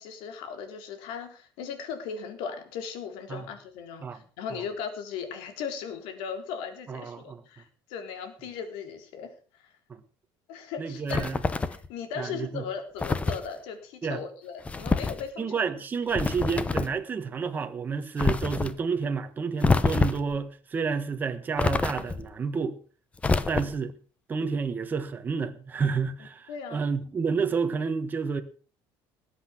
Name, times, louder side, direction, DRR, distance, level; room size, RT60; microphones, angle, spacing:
voice 1, 0.0-9.7 10.5-11.4 11.7-15.6 26.5-26.8, left 6 dB, 80° left, 3.9 m, -38 dB
voice 2, 6.9-7.4 9.9-10.0 10.8-11.4 12.2-12.6 14.0-14.2 15.4-22.8 23.5-23.9 24.3-28.4, right 5 dB, 20° right, 1.4 m, -30 dB
sound 1, 11.1-11.9 13.0-13.5 14.6-15.2 16.1-17.0 18.2-18.7 19.6-20.3 21.6-22.3 23.2-23.9, left 4 dB, 15° left, 0.8 m, -26 dB
19.5 x 8.4 x 6.1 m
cardioid pair, 165°, 9 cm